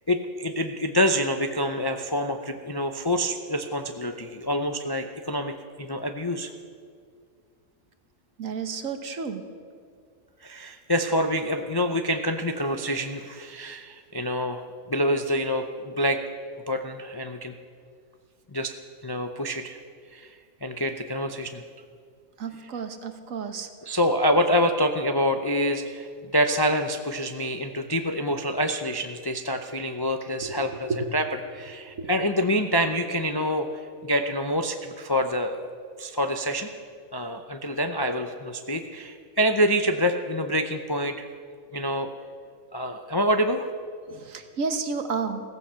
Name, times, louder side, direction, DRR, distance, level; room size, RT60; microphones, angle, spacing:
voice 1, 0.1-5.5 5.8-6.5 10.4-16.2 16.7-17.5 18.5-18.7 19.0-19.8 20.1-21.6 23.9-31.3 31.5-33.7 34.0-35.6 36.0-36.7 37.1-41.3 41.7-42.1 42.7-43.7, equal, 30° left, 5 dB, 0.4 m, -26 dB
voice 2, 8.4-9.4 22.4-24.0 30.4-30.6 30.9-31.1 31.9-32.1 44.1-45.4, right 5 dB, 65° right, 8 dB, 1.5 m, -31 dB
15.5 x 15.0 x 5.7 m, 2.2 s
omnidirectional pair, 1.5 m